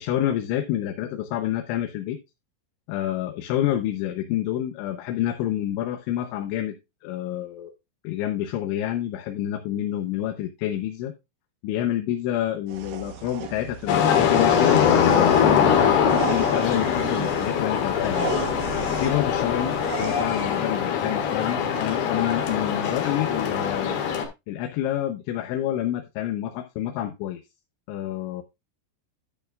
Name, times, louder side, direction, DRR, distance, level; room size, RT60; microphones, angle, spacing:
voice 1, 0.0-2.2 2.9-6.8 7.0-7.7 8.0-11.1 11.6-16.0 16.3-18.3 18.9-23.9 24.5-27.4 27.9-28.4, left 12 dB, 80° left, 5 dB, 3.1 m, -28 dB
sound 1, 12.7-20.6, right 9 dB, 80° right, 2.0 m, -36 dB
sound 2, 13.9-24.3, left 8 dB, 65° left, 3.2 m, -22 dB
10.5 x 9.0 x 2.3 m, 0.23 s
omnidirectional pair, 5.7 m